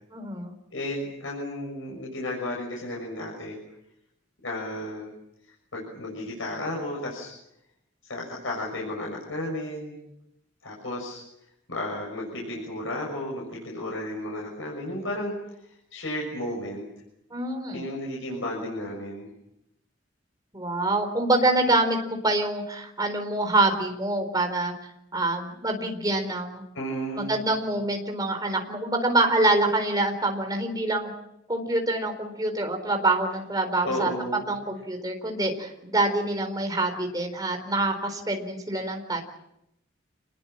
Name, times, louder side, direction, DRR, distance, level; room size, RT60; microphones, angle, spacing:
voice 1, 0.1-0.5 17.3-17.8 20.5-24.7 25.1-26.6 27.2-31.1 31.5-34.1 34.5-39.2, right 2 dB, 20° right, 4 dB, 4.2 m, -26 dB
voice 2, 0.7-3.6 4.4-5.1 5.7-7.3 8.0-10.0 10.6-11.2 11.7-15.3 15.9-16.8 17.7-19.3 26.7-27.5 33.8-34.5, left 1 dB, 85° left, -2 dB, 6.7 m, -33 dB
27.5 x 21.0 x 7.6 m, 0.82 s
head